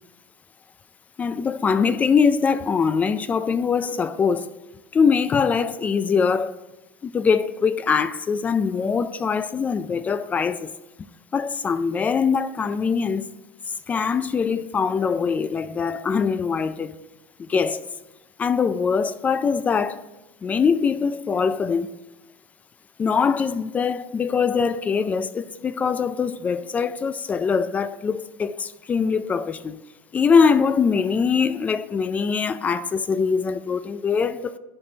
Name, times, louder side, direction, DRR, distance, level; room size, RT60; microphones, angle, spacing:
voice 1, 1.2-4.5 4.9-6.5 7.0-10.7 11.3-13.3 13.9-16.9 17.4-17.8 18.4-20.0 20.4-21.9 23.0-29.8 30.1-34.6, left 6 dB, 20° left, 0.3 m, -22 dB
11.0 x 4.4 x 3.8 m
supercardioid pair, 130°, 7 cm